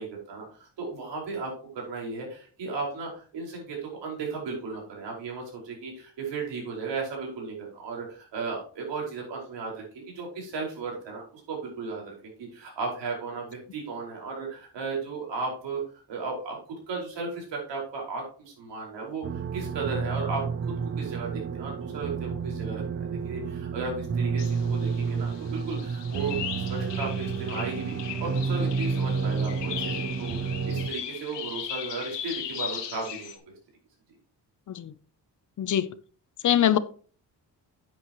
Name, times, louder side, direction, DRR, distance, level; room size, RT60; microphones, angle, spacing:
voice 1, 0.0-15.8 16.1-27.9 28.2-33.5, right 4 dB, 90° right, 5.1 m, -35 dB
sound 1, 19.2-30.9, right 5 dB, 30° right, 0.5 m, -30 dB
sound 2, 24.4-33.4, left 9 dB, 85° left, 1.8 m, -38 dB
voice 2, 35.6-35.9 36.4-36.8, left 11 dB, 45° left, 0.6 m, -23 dB
10.5 x 8.8 x 3.0 m
wide cardioid pair, 175°, 42 cm